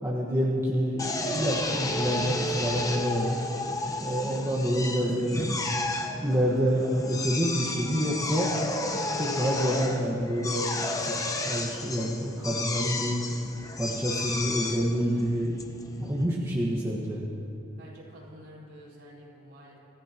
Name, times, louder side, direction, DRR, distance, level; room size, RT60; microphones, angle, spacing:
voice 1, 0.0-3.4 4.0-5.6 6.2-8.5 9.1-11.0 11.5-13.2 13.8-15.5 16.0-17.2, equal, 15° right, -5 dB, 1.6 m, -27 dB
Drill, 1.0-16.3, left 2 dB, 15° left, 0.9 m, -32 dB
voice 2, 17.8-19.8, equal, 50° right, -6 dB, 4.8 m, -49 dB
27.5 x 15.5 x 3.0 m, 2.7 s
head